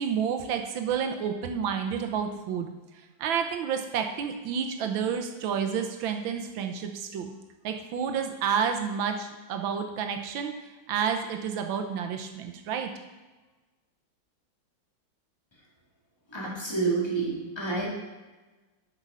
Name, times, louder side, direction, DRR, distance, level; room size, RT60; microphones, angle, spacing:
voice 1, 0.0-2.7 3.2-7.3 7.6-10.5 10.9-12.9, right 7 dB, 85° right, 5 dB, 1.6 m, -30 dB
voice 2, 16.3-17.9, right 4 dB, 15° left, -4 dB, 1.9 m, -28 dB
8.0 x 6.1 x 5.5 m, 1.2 s
omnidirectional pair, 2.1 m